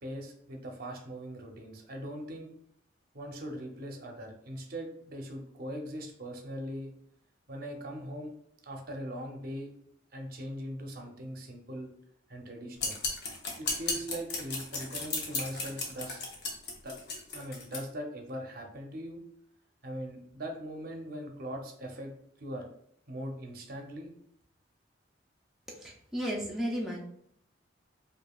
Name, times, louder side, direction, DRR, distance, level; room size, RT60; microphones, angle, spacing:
voice 1, 0.0-2.5 3.1-6.9 7.5-8.3 8.6-9.7 10.1-11.9 12.3-13.0 13.6-16.2 16.8-17.0 17.3-19.2 19.8-22.1 22.4-22.7 23.1-24.1, equal, 50° right, 2 dB, 0.7 m, -40 dB
sound 1, 12.8-17.8, left 3 dB, 55° left, 0.8 m, -35 dB
voice 2, 25.8-27.0, equal, ahead, -4 dB, 0.5 m, -34 dB
4.8 x 2.5 x 2.3 m, 0.69 s
head